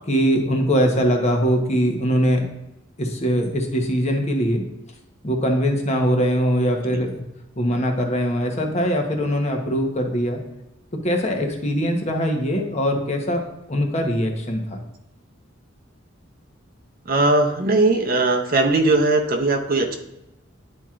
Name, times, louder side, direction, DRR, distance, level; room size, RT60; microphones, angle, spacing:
voice 1, 0.1-2.4 3.0-4.6 5.2-7.2 7.6-10.4 11.0-13.4 13.7-14.8, equal, 35° left, 2 dB, 0.9 m, -22 dB
voice 2, 17.0-20.0, right 2 dB, 50° right, 5 dB, 0.7 m, -19 dB
9.9 x 4.4 x 2.4 m, 0.94 s
head